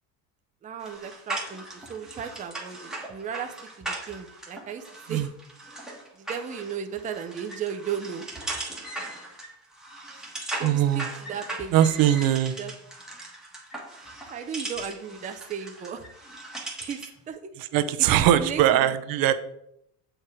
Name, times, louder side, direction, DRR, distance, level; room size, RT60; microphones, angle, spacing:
voice 1, 0.6-5.3 6.1-8.6 10.1-10.3 10.6-11.8 12.6-12.7 14.0-16.1 16.8-17.4 18.0-18.9, right 7 dB, 20° right, 6 dB, 0.5 m, -36 dB
sound 1, 0.8-17.2, right 2 dB, ahead, 1.4 m, -39 dB
voice 2, 10.6-11.1 11.7-12.6 17.6-19.3, right 11 dB, 55° right, 11 dB, 0.7 m, -21 dB
7.7 x 4.6 x 4.8 m, 0.75 s
cardioid pair, 150°, 43 cm